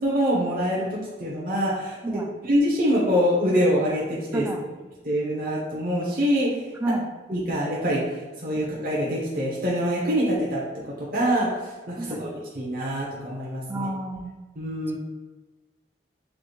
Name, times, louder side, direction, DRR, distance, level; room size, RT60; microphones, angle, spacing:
voice 1, 0.0-4.5 5.0-6.6 7.3-8.0 8.4-13.9 14.6-15.0, equal, 55° right, -6 dB, 1.1 m, -25 dB
voice 2, 4.3-4.6 6.8-7.1 12.0-12.2 13.7-14.3, right 1 dB, 10° right, 4 dB, 0.3 m, -29 dB
5.7 x 2.4 x 3.3 m, 1.2 s
head